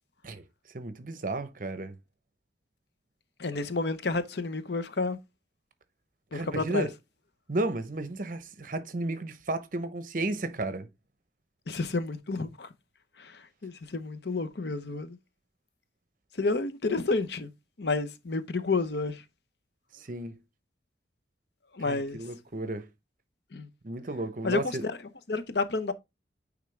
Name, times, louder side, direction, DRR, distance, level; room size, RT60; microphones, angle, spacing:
voice 1, 0.7-1.9 6.3-6.9 7.5-10.9 19.9-20.4 21.9-22.9 23.8-24.8, right 2 dB, 45° right, 0.8 m, -33 dB
voice 2, 3.4-5.2 6.3-6.9 11.7-12.7 13.2-15.2 16.4-17.5 17.8-19.2 21.7-22.2 23.5-23.7 24.4-25.0 25.3-25.9, left 3 dB, 65° left, 0.8 m, -30 dB
9.3 x 3.6 x 3.3 m
head